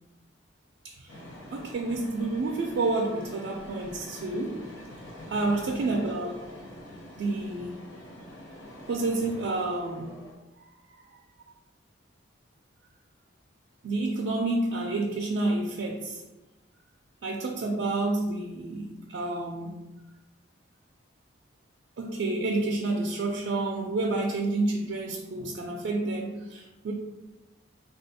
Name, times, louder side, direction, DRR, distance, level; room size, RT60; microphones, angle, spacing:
sound 1, 1.1-10.3, equal, 85° left, 0.7 m, -45 dB
voice 1, 1.5-4.6 5.3-6.3 7.2-7.8 8.9-10.2 13.8-16.2 17.2-19.9 22.0-26.9, right 2 dB, 75° right, 1 dB, 0.4 m, -29 dB
3.3 x 2.3 x 2.7 m, 1.0 s
head